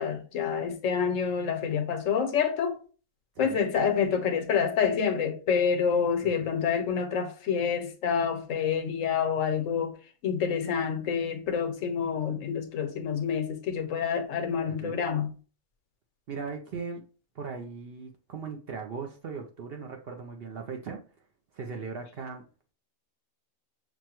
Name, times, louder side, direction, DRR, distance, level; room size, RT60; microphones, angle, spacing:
voice 1, 0.0-2.8 3.4-10.0 10.2-15.3, left 7 dB, 75° left, 1.1 m, -27 dB
voice 2, 3.4-3.7 6.2-6.5 14.7-15.0 16.3-17.0 17.3-21.0 21.5-22.4, right 5 dB, 60° right, 0.7 m, -38 dB
6.0 x 2.2 x 2.9 m
omnidirectional pair, 1.4 m